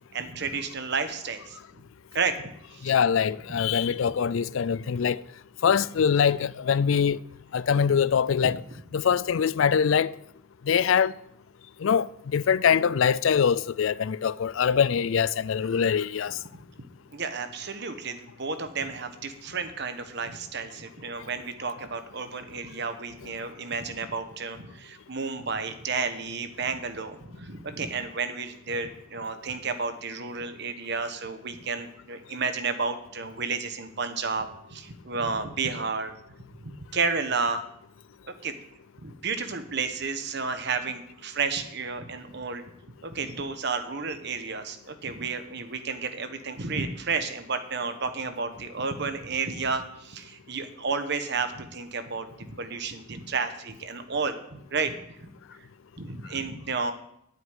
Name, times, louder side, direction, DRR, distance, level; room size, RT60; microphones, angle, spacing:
voice 1, 0.1-1.8 2.1-2.4 2.7-2.9 3.5-3.6 8.4-8.5 17.1-36.2 36.6-37.6 38.2-38.6 39.0-42.6 43.0-54.9 56.0-56.9, right 4 dB, 55° right, 1.2 m, -32 dB
voice 2, 2.8-5.2 5.6-7.2 7.5-8.6 8.9-10.1 10.7-11.1 11.8-16.4, left 7 dB, 70° left, 0.4 m, -23 dB
9.2 x 8.0 x 9.3 m
head